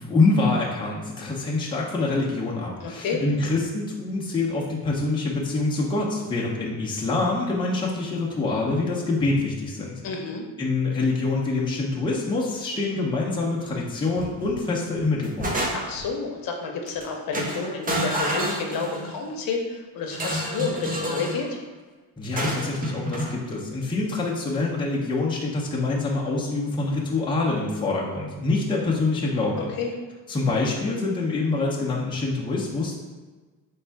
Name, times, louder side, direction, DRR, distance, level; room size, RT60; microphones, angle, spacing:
voice 1, 0.0-9.9 10.6-15.5 22.2-29.7 30.3-33.0, left 3 dB, 15° left, -4 dB, 0.6 m, -25 dB
voice 2, 2.8-3.2 10.0-10.4 15.7-21.6 29.6-29.9, left 4 dB, 70° left, 2 dB, 0.8 m, -30 dB
sound 1, 14.2-14.6 15.0-16.1 16.9-17.0 17.3-19.2 20.1-21.4 22.4-23.3, right 1 dB, 25° right, 0.6 m, -29 dB
3.5 x 3.2 x 4.5 m, 1.3 s
cardioid pair, 170°, 35 cm